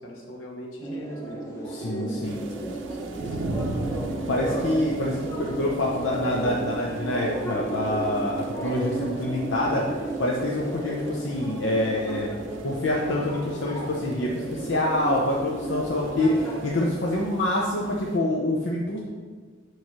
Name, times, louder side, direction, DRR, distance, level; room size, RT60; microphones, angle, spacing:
voice 1, 0.0-3.6, equal, 80° left, -1 dB, 1.4 m, -41 dB
sound 1, 0.8-16.9, right 2 dB, 15° left, 0.8 m, -33 dB
voice 2, 1.7-2.4 4.3-9.8 10.2-12.3 12.6-19.0, left 1 dB, 60° left, -3 dB, 0.8 m, -26 dB
sound 2, 2.2-18.2, right 2 dB, 70° right, 0.6 m, -40 dB
6.9 x 3.2 x 6.0 m, 1.6 s
head